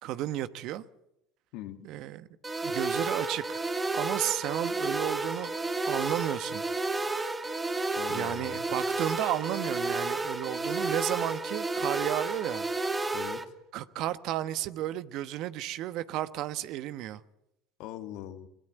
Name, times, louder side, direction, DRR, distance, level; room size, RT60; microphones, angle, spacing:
voice 1, 0.0-0.8 1.8-2.3 2.6-3.6 3.9-5.5 5.9-6.6 8.1-12.7 13.7-17.2, right 13 dB, 60° right, 1.1 m, -33 dB
voice 2, 1.5-1.9 7.9-8.6 13.1-13.4 17.8-18.5, left 12 dB, 65° left, 2.0 m, -41 dB
sound 1, 2.4-13.4, right 3 dB, 20° right, 2.2 m, -31 dB
22.0 x 20.5 x 8.0 m
hypercardioid pair, 75°, 0 cm